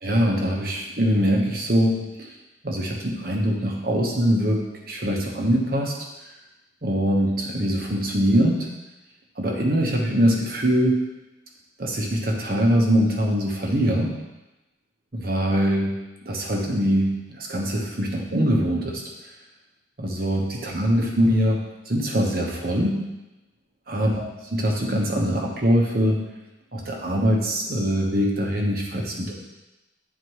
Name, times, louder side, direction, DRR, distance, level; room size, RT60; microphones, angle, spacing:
voice 1, 0.0-2.1 2.6-5.9 6.8-8.7 9.4-11.0 11.8-14.1 15.1-16.0 16.2-19.0 20.0-23.0 23.9-24.2 24.5-26.2 26.7-29.4, equal, 50° right, -1 dB, 1.1 m, -23 dB
9.4 x 4.2 x 3.1 m, 1.0 s
head